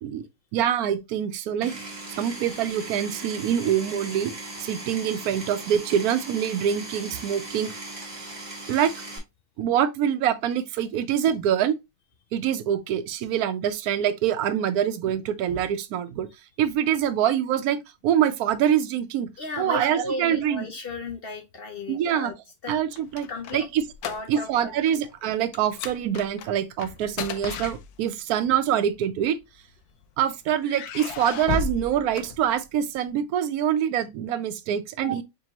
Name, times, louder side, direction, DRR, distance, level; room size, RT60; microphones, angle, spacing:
voice 1, 0.5-1.7 2.1-4.3 4.6-7.7 8.7-8.9 9.6-11.8 12.3-16.3 16.6-17.8 18.0-19.3 19.6-20.7 21.9-22.3 22.7-23.8 24.3-29.4 30.2-35.2, right 9 dB, 80° right, 1.0 m, -25 dB
Power tool, 1.6-9.2, right 2 dB, 30° right, 1.3 m, -38 dB
voice 2, 19.4-22.3 22.6-22.7 23.3-23.7 24.1-24.7 35.0-35.2, left 3 dB, 55° left, 0.6 m, -35 dB
sound 1, 22.7-24.6 24.9-25.1 25.5-28.3 29.2-30.0 30.6-32.9, left 6 dB, 85° left, 1.1 m, -35 dB
5.1 x 2.7 x 2.8 m
omnidirectional pair, 1.6 m